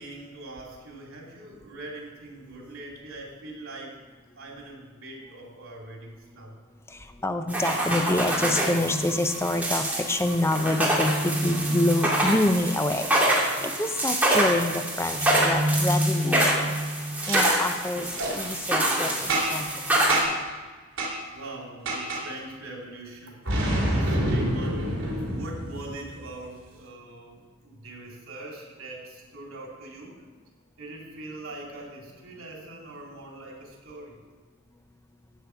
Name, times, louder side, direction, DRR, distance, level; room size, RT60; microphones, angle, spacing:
voice 1, 0.0-4.0 4.4-6.6 20.5-20.8 21.3-30.3 30.8-34.2, right 2 dB, 80° right, -1 dB, 2.8 m, -42 dB
voice 2, 6.9-16.7 17.3-19.7, left 1 dB, 10° left, 7 dB, 0.5 m, -27 dB
sound 1, 7.5-20.2, right 1 dB, 10° right, 2.1 m, -25 dB
Boom, 17.2-17.4 18.1-18.3 19.3-19.7 20.1-20.5 21.0-21.1 21.9-22.2 23.5-26.2, right 1 dB, 65° right, 3.0 m, -27 dB
15.5 x 6.7 x 4.6 m, 1.4 s
head